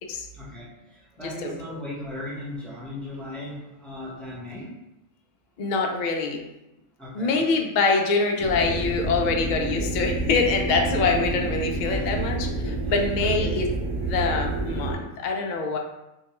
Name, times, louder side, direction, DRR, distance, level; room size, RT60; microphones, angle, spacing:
voice 1, 0.3-4.8 7.0-7.4 11.8-12.1 12.6-13.6, left 1 dB, ahead, -7 dB, 0.6 m, -37 dB
voice 2, 5.6-6.4 7.2-12.5 12.9-13.7 14.1-15.8, left 4 dB, 65° left, 2 dB, 0.4 m, -24 dB
sound 1, 8.4-14.9, right 2 dB, 80° right, 1.0 m, -28 dB
3.6 x 2.2 x 2.9 m, 0.92 s
omnidirectional pair, 1.3 m